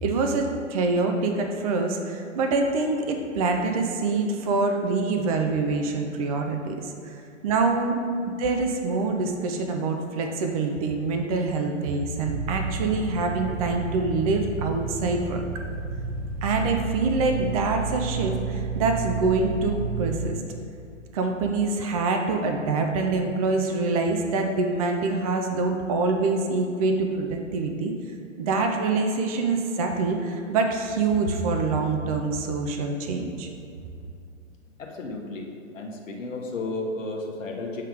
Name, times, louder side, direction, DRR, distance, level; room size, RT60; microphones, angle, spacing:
voice 1, 0.0-7.2 7.4-8.0 8.4-15.4 16.4-20.4 21.1-27.9 28.4-33.5, right 3 dB, 30° right, 3 dB, 0.4 m, -25 dB
sound 1, 12.2-20.3, right 4 dB, 50° right, 0.9 m, -31 dB
voice 2, 34.8-35.5 35.7-37.8, left 2 dB, 75° left, 0 dB, 1.1 m, -33 dB
7.3 x 3.6 x 4.7 m, 2.5 s
figure-of-eight pair, 120°, 39 cm